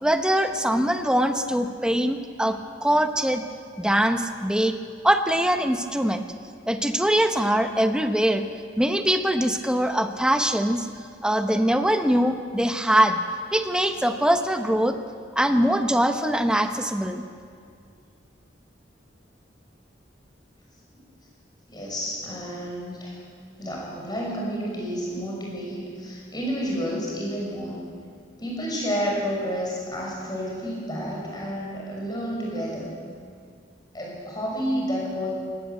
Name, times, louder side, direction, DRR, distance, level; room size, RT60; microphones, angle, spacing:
voice 1, 0.0-3.4 3.8-4.8 5.0-6.2 6.7-8.4 8.8-10.9 11.2-13.2 13.5-15.0 15.3-17.2, equal, 5° right, 7 dB, 0.9 m, -22 dB
voice 2, 21.7-23.2 23.6-27.8 28.4-32.9 33.9-35.3, equal, 20° left, -3 dB, 6.3 m, -30 dB
18.5 x 17.0 x 8.2 m, 2.2 s
head